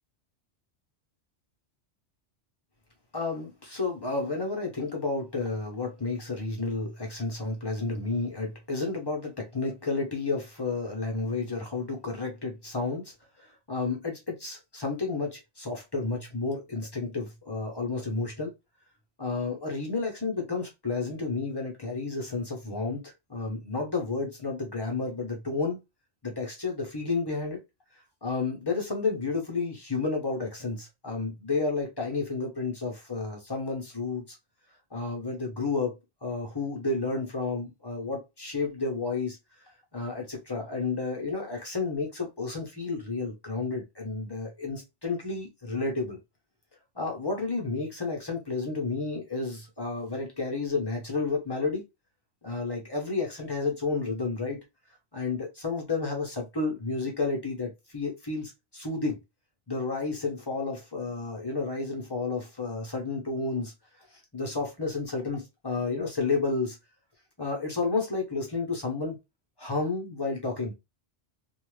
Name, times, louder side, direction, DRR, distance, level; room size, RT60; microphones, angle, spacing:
voice 1, 3.1-18.5 19.2-25.8 26.2-27.6 28.2-34.4 34.9-39.4 39.9-46.2 46.9-51.8 52.4-54.6 55.1-59.2 59.7-63.7 64.3-66.8 67.4-69.2 69.6-70.7, left 3 dB, 25° left, 0.9 m, -31 dB
2.6 x 2.4 x 3.2 m
omnidirectional pair, 1.2 m